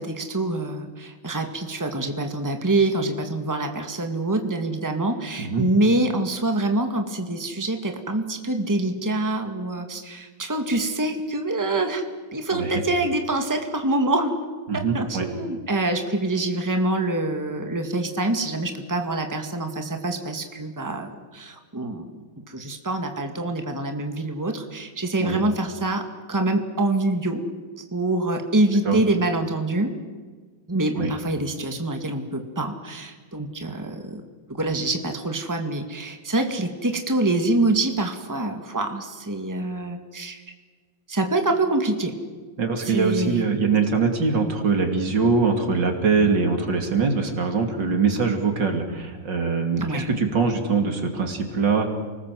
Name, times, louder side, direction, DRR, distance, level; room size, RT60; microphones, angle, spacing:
voice 1, 0.0-12.0 12.3-14.4 14.7-22.1 22.5-27.4 27.9-30.0 30.7-34.2 34.5-40.4 41.1-42.2 42.8-43.5 49.8-50.1, right 2 dB, 10° right, 5 dB, 2.1 m, -25 dB
voice 2, 12.5-12.8 14.7-15.3 25.2-25.4 28.9-29.0 31.0-31.1 42.6-51.9, right 4 dB, 70° right, 5 dB, 3.4 m, -23 dB
29.5 x 20.0 x 7.8 m, 1.4 s
omnidirectional pair, 2.0 m